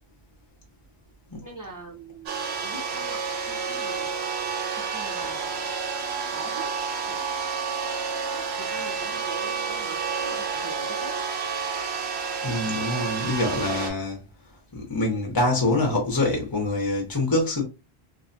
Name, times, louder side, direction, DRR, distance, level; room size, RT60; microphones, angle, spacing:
voice 1, 1.4-3.2 3.5-4.3 4.7-5.7 6.2-6.8 7.1-7.3 7.5-11.2, right 2 dB, 25° right, 0.5 m, -43 dB
sound 1, 2.3-13.9, right 5 dB, 85° right, 0.9 m, -30 dB
voice 2, 12.4-14.2 14.7-17.6, left 2 dB, 30° left, 0.5 m, -25 dB
2.5 x 2.1 x 2.5 m
omnidirectional pair, 1.1 m